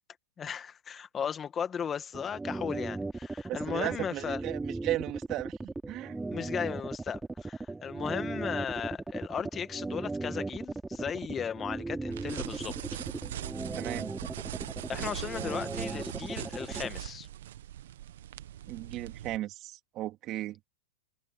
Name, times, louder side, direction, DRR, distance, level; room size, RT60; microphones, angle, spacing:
voice 1, 0.4-4.4 6.3-12.8 14.9-17.3, left 7 dB, 20° left, 1.8 m, -36 dB
sound 1, 2.1-16.9, right 3 dB, 10° right, 3.7 m, -37 dB
voice 2, 3.5-5.5 5.9-6.2 13.8-14.1 18.7-20.6, right 15 dB, 35° right, 2.8 m, -35 dB
sound 2, 12.1-19.4, right 12 dB, 70° right, 1.3 m, -41 dB
hypercardioid pair, 125°, 0 cm